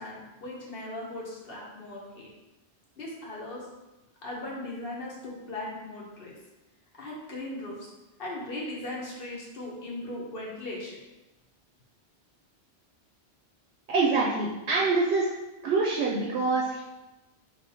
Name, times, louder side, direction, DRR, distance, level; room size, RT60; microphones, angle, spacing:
voice 1, 0.0-2.3 3.0-3.7 4.2-6.3 7.0-7.9 8.2-11.0, left 1 dB, 55° left, -4 dB, 1.1 m, -38 dB
voice 2, 13.9-15.3 15.6-16.8, right 3 dB, 75° right, -3 dB, 0.8 m, -25 dB
3.2 x 3.0 x 4.1 m, 1.0 s
omnidirectional pair, 1.2 m